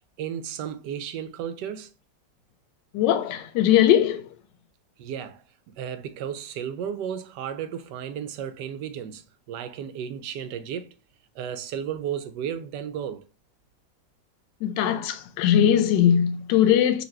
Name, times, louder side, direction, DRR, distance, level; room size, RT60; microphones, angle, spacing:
voice 1, 0.2-1.9 5.0-11.0 11.3-13.3, right 9 dB, 75° right, 1.2 m, -34 dB
voice 2, 2.9-4.3 14.6-17.0, left 10 dB, 85° left, 1.3 m, -20 dB
4.0 x 2.9 x 3.1 m
omnidirectional pair, 1.9 m